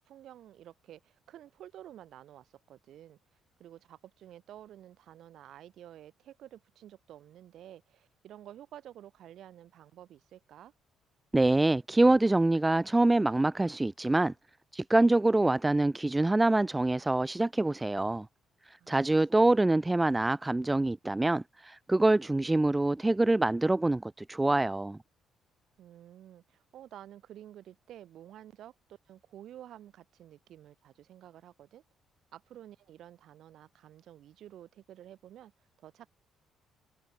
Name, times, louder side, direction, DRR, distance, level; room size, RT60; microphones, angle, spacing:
voice 1, 0.0-3.2 3.6-10.7 18.8-19.0 25.8-31.8 32.3-35.5 35.8-36.1, right 11 dB, 70° right, 7.5 m, -51 dB
voice 2, 11.3-14.3 14.7-18.3 18.9-25.0, right 2 dB, 15° right, 1.1 m, -25 dB
supercardioid pair, 60°, 0 cm